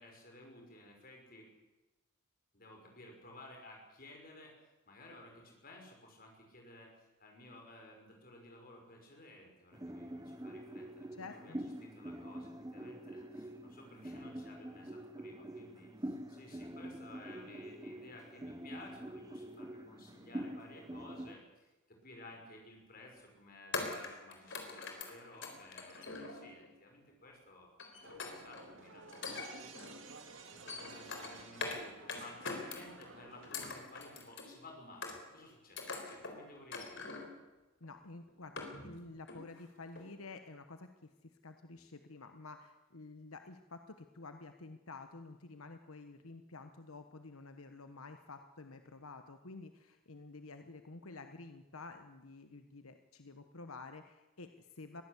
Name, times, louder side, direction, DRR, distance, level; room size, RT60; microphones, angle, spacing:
voice 1, 0.0-1.5 2.5-4.6 4.9-37.1, left 2 dB, 40° left, 2 dB, 5.9 m, -55 dB
sound 1, 9.7-21.4, right 1 dB, 15° right, 0.9 m, -46 dB
voice 2, 11.2-11.6 37.8-40.9 41.2-55.0, left 3 dB, 80° left, 7 dB, 1.2 m, -50 dB
sound 2, 22.3-22.5 23.7-26.7 27.8-28.7 29.1-30.0 30.4-31.8 32.1-33.1 33.4-34.5 35.0-35.4 35.8-36.4 36.7-37.4 37.8-37.9 38.3-39.0 39.3-39.6 39.9-40.0, left 3 dB, 60° left, 4.1 m, -43 dB
sound 3, 28.0-33.5, right 4 dB, 60° right, 2.2 m, -54 dB
22.0 x 16.0 x 8.3 m, 1.1 s
head